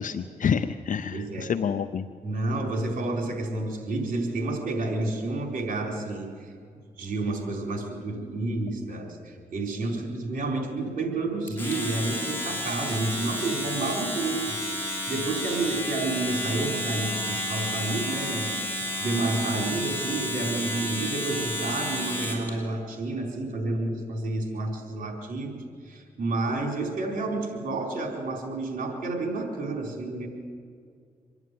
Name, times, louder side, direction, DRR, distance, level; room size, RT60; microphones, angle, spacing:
voice 1, 0.0-2.1, left 7 dB, 65° left, 10 dB, 0.7 m, -28 dB
voice 2, 1.1-1.5 2.2-6.5 7.0-14.6 15.1-18.6 19.0-30.3, right 2 dB, 75° right, 1 dB, 4.4 m, -30 dB
Domestic sounds home sounds, 11.5-22.5, left 1 dB, 15° left, 6.5 m, -31 dB
25.5 x 11.0 x 9.4 m, 2.1 s
cardioid pair, 55°, 15 cm